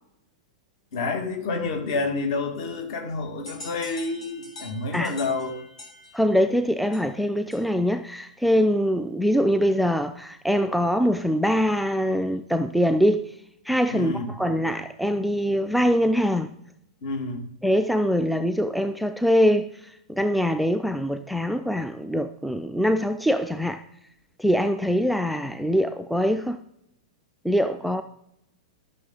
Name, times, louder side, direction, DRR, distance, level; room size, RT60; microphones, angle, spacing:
voice 1, 0.9-5.6 13.9-14.3 17.0-17.4, left 3 dB, 45° left, 2.3 m, -29 dB
sound 1, 3.5-8.0, left 2 dB, 65° left, 3.4 m, -45 dB
voice 2, 6.1-13.3 13.7-16.5 17.6-19.7 20.1-23.8 24.4-26.6 27.4-28.0, equal, ahead, 0.4 m, -23 dB
13.0 x 6.2 x 3.9 m
figure-of-eight pair, 100°, 4 cm